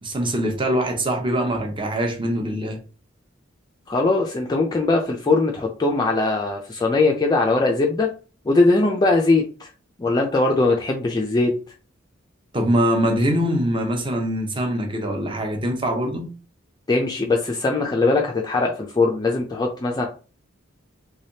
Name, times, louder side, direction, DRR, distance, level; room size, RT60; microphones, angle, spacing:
voice 1, 0.0-2.8 12.5-16.3, equal, 25° right, 0.8 m, -23 dB
voice 2, 3.9-8.1 8.4-9.7 10.0-11.5 16.9-20.1, left 3 dB, 20° left, 0.4 m, -20 dB
3.4 x 3.3 x 2.7 m
head